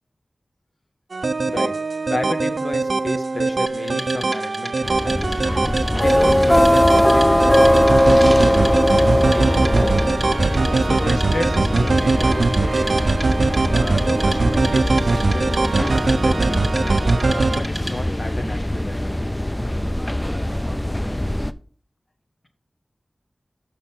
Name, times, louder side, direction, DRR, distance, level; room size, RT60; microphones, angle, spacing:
sound 1, 1.1-17.6, right 3 dB, 85° right, 0.4 m, -21 dB
voice 1, 2.1-5.4 6.0-8.6 9.0-10.2 10.8-13.2 13.7-16.6 17.2-19.2 21.3-21.5, left 2 dB, 60° left, 4 dB, 1.6 m, -32 dB
Wood, 3.7-18.2, right 1 dB, 5° right, 1.7 m, -34 dB
sound 2, 4.8-21.5, left 1 dB, 15° left, 0.5 m, -20 dB
6.3 x 6.3 x 5.8 m, 0.42 s
wide cardioid pair, 55°, 0 cm